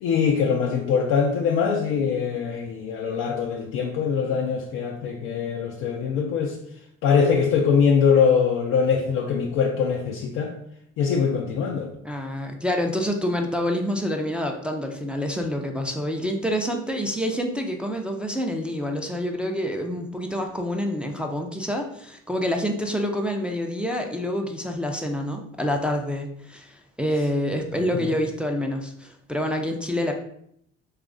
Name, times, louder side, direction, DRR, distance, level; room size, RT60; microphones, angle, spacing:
voice 1, 0.0-6.6 7.0-10.5 11.0-11.9 27.9-28.1, left 6 dB, 70° left, -1 dB, 0.5 m, -22 dB
voice 2, 12.0-30.1, equal, 5° right, 2 dB, 0.5 m, -27 dB
3.0 x 2.4 x 3.7 m, 0.70 s
hypercardioid pair, 55°, 33 cm